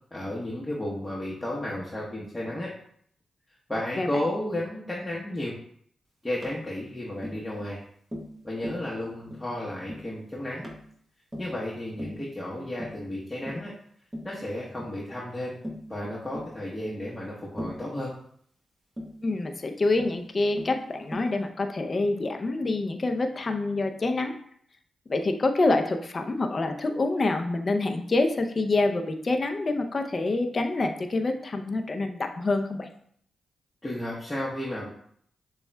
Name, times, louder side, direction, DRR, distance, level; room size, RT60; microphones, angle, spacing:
voice 1, 0.1-2.7 3.7-5.5 6.2-7.8 8.4-10.7 11.4-13.7 14.2-15.6 15.9-18.2 33.8-34.9, left 1 dB, 15° left, -6 dB, 0.9 m, -33 dB
Tap, 6.4-6.6 7.2-7.4 8.1-8.4 8.6-8.9 9.3-9.5 9.9-10.1 10.6-10.9 11.3-11.6 12.0-12.2 12.8-13.0 13.5-13.7 14.1-14.4 14.8-15.0 15.6-15.9 16.3-16.5 17.6-17.9 19.0-19.2 20.0-20.2 20.6-20.8 21.1-21.4, equal, 15° right, 1.0 m, -38 dB
voice 2, 19.2-24.3 25.1-32.9, left 2 dB, 45° left, 5 dB, 0.5 m, -26 dB
6.9 x 2.3 x 2.2 m, 0.64 s
supercardioid pair, 40°, 0 cm